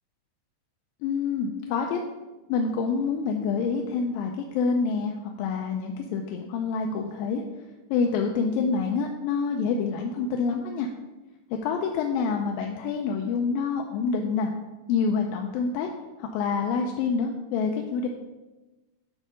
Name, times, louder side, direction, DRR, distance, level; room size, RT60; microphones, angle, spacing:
voice 1, 1.0-2.0 2.5-7.4 7.9-10.9 11.6-14.5 14.9-15.9 16.2-18.1, left 5 dB, 85° left, 2 dB, 2.3 m, -27 dB
8.8 x 3.7 x 6.3 m, 1.1 s
omnidirectional pair, 4.0 m